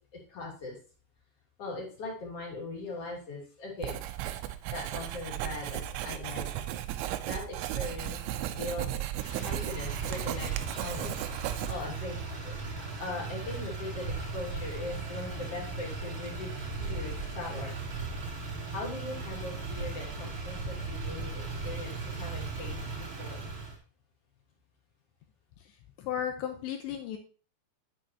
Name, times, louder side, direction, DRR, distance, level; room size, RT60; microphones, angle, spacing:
voice 1, 0.3-0.8 1.6-4.0 4.7-6.7 7.3-9.0 9.4-12.2 12.4-12.5 13.0-17.7 18.7-23.5, left 2 dB, 35° left, -2 dB, 3.2 m, -40 dB
Writing, 3.8-12.0, right 13 dB, 80° right, 2.9 m, -35 dB
Motor vehicle (road), 9.1-23.7, right 3 dB, 30° right, 2.5 m, -37 dB
voice 2, 26.0-27.2, left 9 dB, 80° left, 5 dB, 2.7 m, -34 dB
9.2 x 8.6 x 2.9 m, 0.38 s
omnidirectional pair, 5.8 m